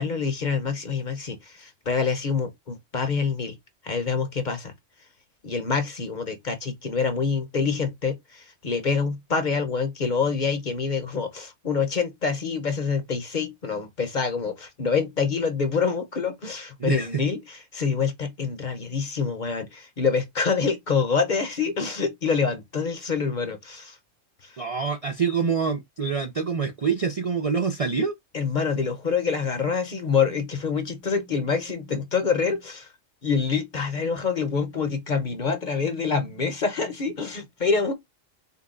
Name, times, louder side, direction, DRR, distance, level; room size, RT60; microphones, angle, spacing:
voice 1, 0.0-3.6 3.8-4.7 5.4-24.0 24.4-24.5 28.3-32.9 33.2-37.9, left 5 dB, 40° left, 0.9 m, -26 dB
voice 2, 16.8-17.2 24.6-28.2, right 5 dB, 55° right, 0.4 m, -26 dB
5.5 x 2.2 x 3.8 m
omnidirectional pair, 1.3 m